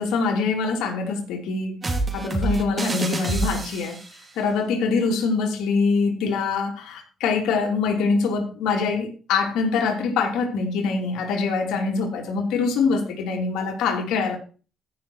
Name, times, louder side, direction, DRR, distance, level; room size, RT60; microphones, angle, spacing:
voice 1, 0.0-1.8 2.1-4.0 4.4-14.4, left 4 dB, 90° left, 2.8 m, -24 dB
sound 1, 1.8-4.2, right 2 dB, 30° right, 2.8 m, -27 dB
14.5 x 5.9 x 4.5 m
cardioid pair, 90°, 0 cm